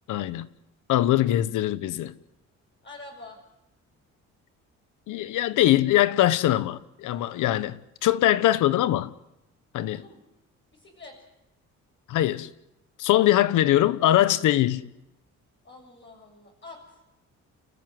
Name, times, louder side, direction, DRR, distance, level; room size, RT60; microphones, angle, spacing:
voice 1, 0.1-0.5 0.9-2.1 5.1-9.1 9.7-10.0 12.1-12.5 13.0-14.9, left 13 dB, 85° left, 1.2 m, -22 dB
voice 2, 2.8-3.4 9.9-10.2 10.7-11.2 15.6-17.0, left 2 dB, 40° left, 7.2 m, -46 dB
30.0 x 14.0 x 9.4 m
cardioid pair, 90°, 30 cm